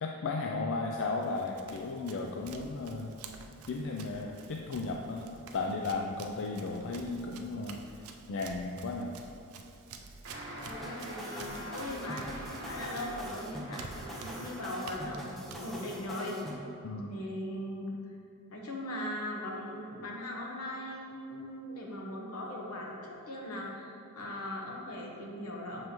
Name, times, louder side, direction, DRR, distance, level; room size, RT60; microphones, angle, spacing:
voice 1, 0.0-3.2 3.7-7.8 8.3-9.2 16.8-17.1, left 3 dB, 60° left, 1 dB, 0.4 m, -35 dB
Run, 1.1-16.4, right 4 dB, 75° right, 0.5 m, -50 dB
sound 1, 10.2-15.1, equal, 60° right, 1.5 m, -45 dB
voice 2, 10.6-16.4 17.1-18.2 18.5-25.8, left 1 dB, 80° left, -2 dB, 1.1 m, -39 dB
sound 2, 10.8-16.6, equal, ahead, 0.6 m, -43 dB
7.0 x 5.3 x 3.0 m, 2.5 s
head